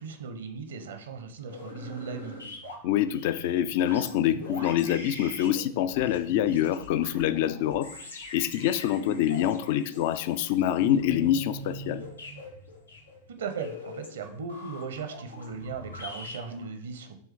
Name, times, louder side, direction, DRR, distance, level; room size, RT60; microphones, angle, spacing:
voice 1, 0.0-2.4 13.3-17.2, right 5 dB, 65° right, 7 dB, 0.8 m, -37 dB
sound 1, 1.4-16.6, equal, 80° left, 1.7 m, -42 dB
voice 2, 2.8-12.0, left 11 dB, 50° left, 14 dB, 0.4 m, -26 dB
5.6 x 3.7 x 4.6 m, 0.62 s
figure-of-eight pair, 90°, 0 cm